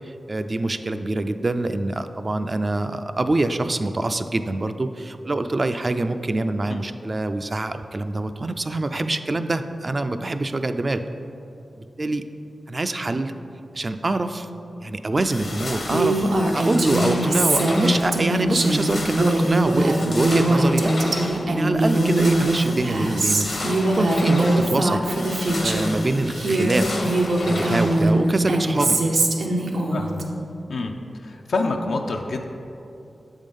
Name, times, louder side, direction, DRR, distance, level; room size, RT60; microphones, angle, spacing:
voice 1, 0.0-11.0 11.7-12.2 12.7-13.3 13.7-14.5 14.8-16.3 16.5-20.9 21.5-25.0 25.6-29.0, right 2 dB, 40° right, 9 dB, 0.3 m, -25 dB
sound 1, 15.1-28.3, left 1 dB, 65° left, 0.8 m, -32 dB
Female speech woman speaking, 15.9-26.0 26.3-30.2, right 2 dB, 75° right, 0.6 m, -22 dB
voice 2, 29.9-30.2 30.7-30.9 31.2-32.4, left 3 dB, 85° left, 2 dB, 0.4 m, -27 dB
7.4 x 3.6 x 5.3 m, 2.7 s
cardioid pair, 55°, 0 cm